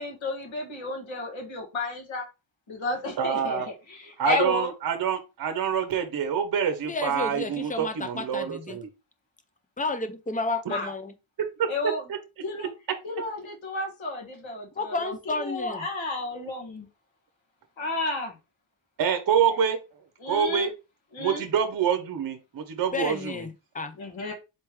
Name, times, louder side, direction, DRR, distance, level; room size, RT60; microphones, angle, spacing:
voice 1, 0.0-2.2 2.7-4.7 10.7-10.9 11.7-12.0 12.4-12.7 13.0-16.9 17.8-18.3 20.2-20.7 21.1-21.4 24.0-24.3, left 2 dB, 85° left, 1.9 m, -32 dB
voice 2, 3.2-3.7 4.2-8.9 10.7-10.8 11.6-12.2 19.0-19.8 20.3-20.7 21.2-23.4, right 7 dB, 50° right, 0.7 m, -26 dB
voice 3, 6.9-8.8 9.8-11.1 14.8-15.9 22.9-23.9, left 3 dB, 20° left, 0.3 m, -31 dB
4.3 x 3.3 x 3.1 m
wide cardioid pair, 180°, 46 cm